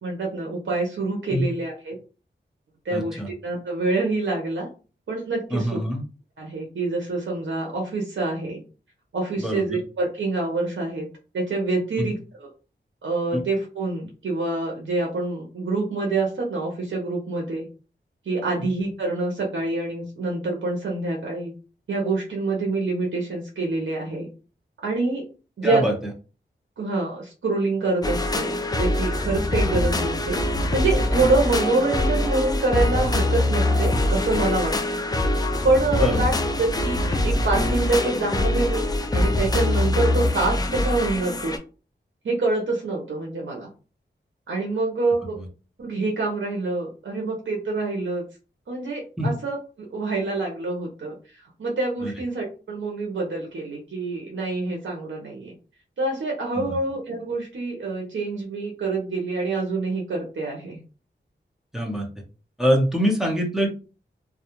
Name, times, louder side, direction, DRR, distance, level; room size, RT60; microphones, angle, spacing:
voice 1, 0.0-2.0 2.8-4.7 5.1-5.8 6.4-8.6 9.1-11.1 11.3-12.5 13.0-17.7 18.3-21.5 21.9-24.3 24.8-25.2 25.6-25.8 26.8-30.4 30.7-34.7 35.6-38.8 39.1-41.5 42.2-43.7 44.5-45.4 45.8-48.2 48.7-55.5 56.0-60.8, right 3 dB, 80° right, -1 dB, 0.6 m, -26 dB
voice 2, 2.9-3.3 5.5-6.0 9.4-9.6 12.0-12.1 13.3-13.4 25.6-25.9 36.0-36.2 45.4-45.5 49.2-49.3 52.0-52.1 56.6-56.8 61.7-62.1 62.6-63.7, equal, ahead, -1 dB, 0.8 m, -23 dB
sound 1, 28.0-41.6, left 1 dB, 20° left, 0.4 m, -23 dB
2.3 x 2.0 x 2.9 m, 0.35 s
wide cardioid pair, 70°, 20 cm